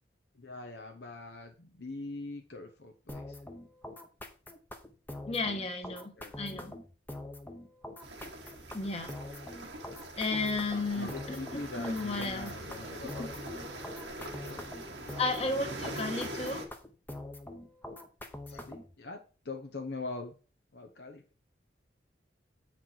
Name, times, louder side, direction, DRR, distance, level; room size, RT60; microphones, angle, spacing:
voice 1, 0.3-3.4 5.9-6.3 10.7-13.3 14.4-14.6 18.5-20.3 20.7-21.2, left 3 dB, 65° left, 3 dB, 1.0 m, -43 dB
sound 1, 3.1-18.9, left 1 dB, 10° left, 0.9 m, -44 dB
voice 2, 5.2-6.1 6.4-6.7 8.7-9.1 10.2-11.4 11.8-12.5 13.2-13.3 15.2-16.7, left 3 dB, 35° left, 4 dB, 1.6 m, -33 dB
sound 2, 8.0-16.7, right 1 dB, 85° right, 1.6 m, -42 dB
7.9 x 6.0 x 4.5 m, 0.36 s
head